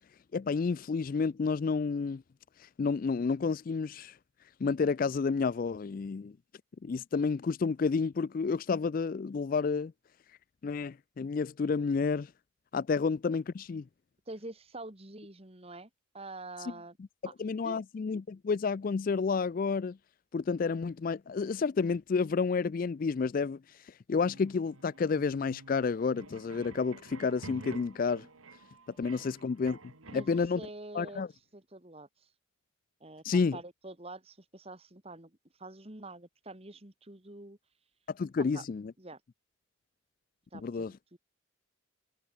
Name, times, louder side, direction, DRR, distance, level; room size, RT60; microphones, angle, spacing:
voice 1, 0.3-2.2 2.8-4.1 4.6-6.3 6.8-9.9 10.6-12.3 12.7-13.8 17.4-20.0 20.3-23.6 24.1-28.3 29.0-29.8 30.1-30.6 30.9-31.3 33.2-33.6 38.1-38.9 40.6-40.9, left 5 dB, 40° left, 0.3 m, -30 dB
voice 2, 14.3-15.9 16.1-17.0 17.3-17.4 17.6-17.8 29.2-29.3 30.1-31.2 31.5-32.1 33.0-37.6 38.4-38.6 39.0-39.2 40.5-41.2, right 2 dB, 30° right, 1.9 m, -46 dB
sound 1, 24.1-30.5, right 2 dB, 90° right, 2.6 m, -50 dB
head